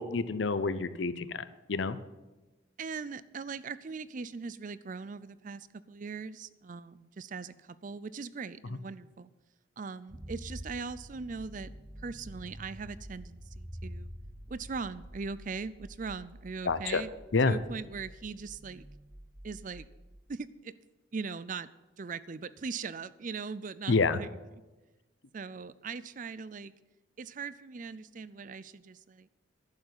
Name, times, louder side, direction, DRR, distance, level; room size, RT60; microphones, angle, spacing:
voice 1, 0.0-2.0 16.7-17.0 17.3-17.6 23.9-24.2, left 4 dB, 65° left, 14 dB, 0.7 m, -28 dB
voice 2, 2.8-9.3 9.8-11.7 12.0-14.1 14.5-17.1 17.4-18.9 19.4-19.9 20.3-20.7 21.1-21.7 22.0-24.3 25.3-26.7 27.2-29.3, right 5 dB, 40° right, 17 dB, 0.4 m, -40 dB
sound 1, 10.1-20.2, equal, 20° right, 0.8 m, -47 dB
11.5 x 7.2 x 9.4 m, 1.1 s
head